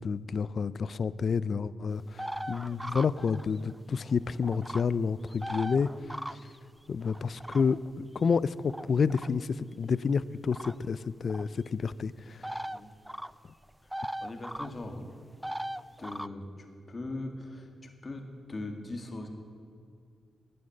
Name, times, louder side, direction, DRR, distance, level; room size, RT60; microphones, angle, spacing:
voice 1, 0.0-5.9 6.3-6.4 6.9-12.5, left 5 dB, 60° left, 18 dB, 0.4 m, -29 dB
sound 1, 2.2-3.8 4.0-4.8 5.3-6.6 7.0-7.9 8.7-9.3 10.5-10.8 11.3-11.5 12.4-12.8 13.1-13.3 13.6-14.7 15.4-16.3, right 1 dB, 5° right, 0.4 m, -38 dB
voice 2, 14.2-15.0 16.0-16.5 16.9-19.3, left 2 dB, 40° left, 4 dB, 2.1 m, -40 dB
12.5 x 9.3 x 8.8 m, 2.3 s
cardioid pair, 60°, 0 cm